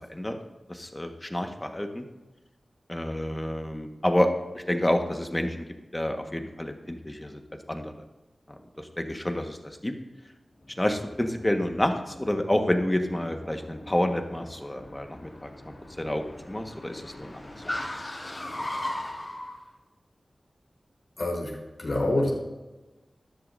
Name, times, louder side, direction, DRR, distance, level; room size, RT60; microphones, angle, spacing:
voice 1, 0.7-2.1 2.9-4.3 4.5-5.7 5.9-7.4 7.7-7.9 8.5-9.9 10.8-15.5 16.0-17.3, left 1 dB, 20° left, 4 dB, 1.5 m, -29 dB
Car, 10.6-19.5, left 1 dB, 45° left, 2.7 m, -39 dB
voice 2, 21.2-21.5 21.8-22.3, left 1 dB, 60° left, -1 dB, 4.0 m, -26 dB
14.0 x 11.0 x 2.7 m, 1.1 s
cardioid pair, 40°, 0 cm